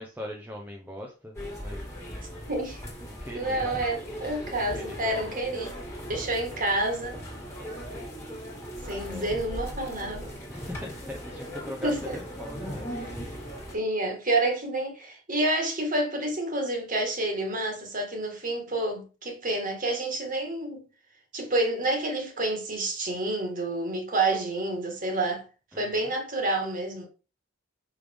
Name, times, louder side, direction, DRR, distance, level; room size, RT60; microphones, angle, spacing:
voice 1, 0.0-2.2 3.0-3.7 4.6-5.4 9.0-9.3 10.5-12.9 25.7-26.1, left 1 dB, 10° right, 0.7 m, -41 dB
sound 1, 1.3-13.7, equal, 10° left, 1.9 m, -38 dB
voice 2, 2.5-2.8 3.3-5.7 6.1-7.2 8.9-10.4 11.8-12.2 13.7-20.8 21.3-25.4 25.7-27.1, right 2 dB, 40° right, 1.6 m, -29 dB
5.6 x 5.1 x 3.5 m
head